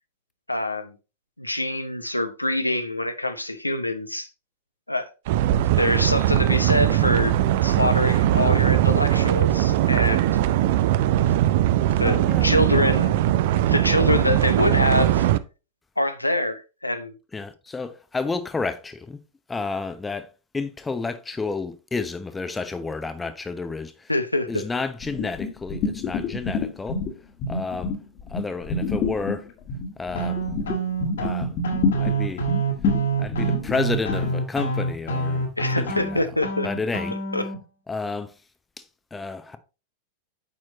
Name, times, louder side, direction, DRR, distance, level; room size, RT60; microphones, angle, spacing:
voice 1, 0.5-0.9 1.4-4.3 4.9-5.1 5.8-10.3 11.2-11.3 12.0-13.2 13.7-15.3 16.0-17.1 24.1-24.7 35.6-36.7 37.3-37.4, left 1 dB, 85° left, 0.8 m, -25 dB
sound 1, 5.3-15.4, right 13 dB, 50° right, 0.5 m, -20 dB
voice 2, 12.0-12.9 17.3-19.2 19.5-24.1 24.5-27.0 27.5-27.9 28.3-29.5 30.0-30.4 31.2-31.5 32.0-32.5 33.2-36.3 36.6-37.2 37.9-38.4 38.8-38.9 39.1-39.6, left 4 dB, 10° left, 0.9 m, -31 dB
sound 2, 25.0-27.1 27.4-34.3, left 4 dB, 35° left, 1.7 m, -28 dB
sound 3, 30.1-37.6, right 3 dB, 65° left, 2.1 m, -27 dB
8.9 x 6.1 x 3.0 m
figure-of-eight pair, 90°, 0 cm